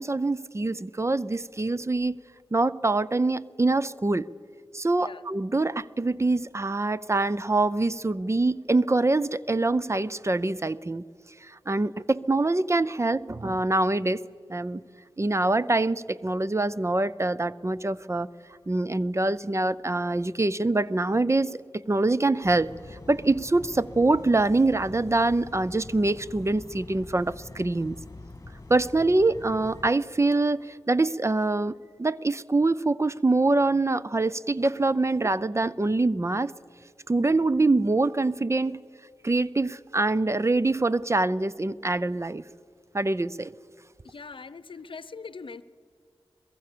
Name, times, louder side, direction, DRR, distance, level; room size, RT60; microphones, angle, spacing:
voice 1, 0.0-2.2 2.5-4.3 4.7-11.0 11.4-14.2 14.5-14.8 15.2-18.3 18.7-22.7 23.1-28.0 28.7-36.5 37.1-38.8 39.2-42.4 42.9-43.5, right 2 dB, 30° right, 17 dB, 0.6 m, -24 dB
sound 1, 22.4-29.9, left 2 dB, 30° left, 2.1 m, -44 dB
voice 2, 44.0-45.6, left 4 dB, 60° left, 16 dB, 0.8 m, -41 dB
22.5 x 21.5 x 6.8 m, 2.1 s
cardioid pair, 45°, 10 cm